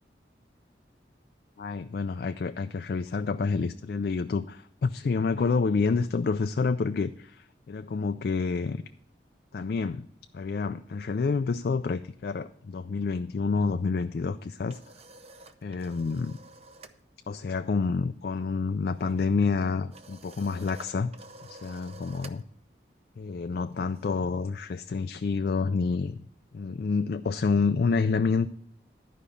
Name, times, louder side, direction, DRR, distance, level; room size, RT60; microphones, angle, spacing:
voice 1, 1.6-8.8 9.5-10.1 10.3-14.8 15.6-16.4 17.3-21.1 21.4-22.4 23.2-26.2 26.5-28.5, left 4 dB, 55° left, 9 dB, 0.3 m, -28 dB
sound 1, 14.3-17.0 17.3-17.6 17.8-24.5, right 3 dB, 35° right, 0.6 m, -51 dB
11.5 x 5.1 x 6.9 m, 0.67 s
head